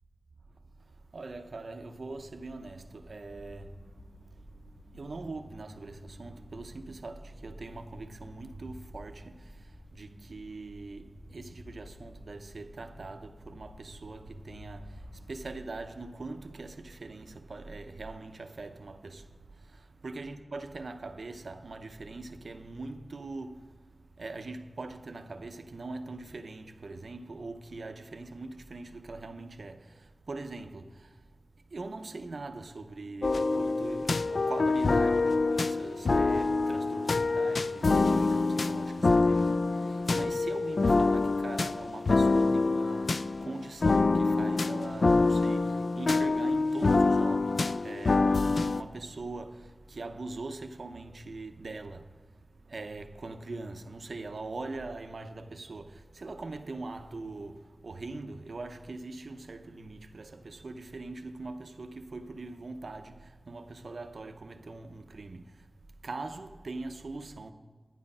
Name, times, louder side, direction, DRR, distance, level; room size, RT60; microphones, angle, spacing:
voice 1, 0.9-3.8 4.1-4.4 4.9-23.7 24.2-31.2 31.7-65.7 66.0-67.5, right 3 dB, 85° right, 0.7 m, -42 dB
Factory Atmo, 2.1-15.2, equal, 65° left, 4.2 m, -52 dB
sound 1, 33.2-48.8, left 3 dB, 85° left, 0.4 m, -26 dB
11.5 x 10.5 x 5.5 m
wide cardioid pair, 75°, 0 cm